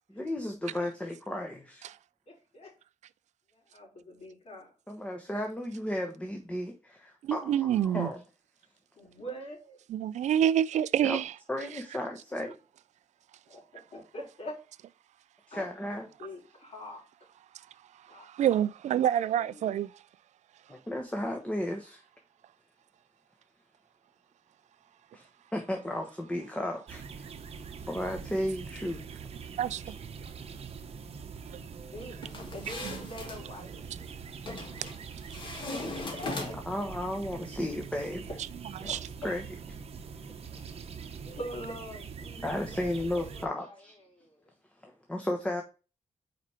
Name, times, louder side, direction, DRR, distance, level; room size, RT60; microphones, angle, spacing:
voice 1, 0.1-1.8 4.9-8.2 11.0-11.2 11.5-12.6 15.5-16.1 20.7-22.0 25.1-27.2 27.9-29.0 36.7-38.3 39.2-39.4 42.4-44.0 44.8-45.6, left 1 dB, 10° left, 1.0 m, -34 dB
voice 2, 2.3-2.7 3.5-4.7 9.0-9.8 13.5-14.6 15.5-15.7 15.9-17.0 18.1-18.6 19.3-19.8 31.9-34.2 35.8-36.6 38.3-38.4 38.8-39.0 40.3-44.5, equal, 55° left, 3.9 m, -45 dB
voice 3, 7.2-8.1 9.9-11.3 18.2-19.9 29.6-30.0 32.8-33.0 38.8-39.0, right 10 dB, 75° right, 0.4 m, -27 dB
sound 1, 26.9-43.5, right 6 dB, 55° right, 0.9 m, -43 dB
sound 2, 32.2-33.4 34.5-35.0 35.3-36.8, left 2 dB, 40° left, 1.6 m, -38 dB
5.0 x 4.8 x 4.3 m
wide cardioid pair, 120°, 12 cm